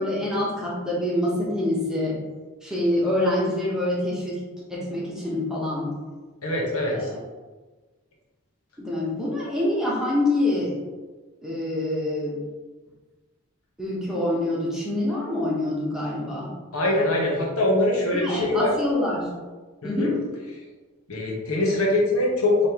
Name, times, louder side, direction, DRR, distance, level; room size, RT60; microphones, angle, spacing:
voice 1, 0.0-2.2 2.6-4.4 4.7-5.9 6.9-7.2 8.8-10.8 11.4-12.4 13.8-16.5 18.1-19.3 19.8-20.2, left 1 dB, 5° right, -6 dB, 0.9 m, -26 dB
voice 2, 6.4-7.1 16.7-18.7 19.8-20.1 21.1-22.7, left 2 dB, 85° left, -2 dB, 1.1 m, -23 dB
5.3 x 3.1 x 3.0 m, 1.3 s
head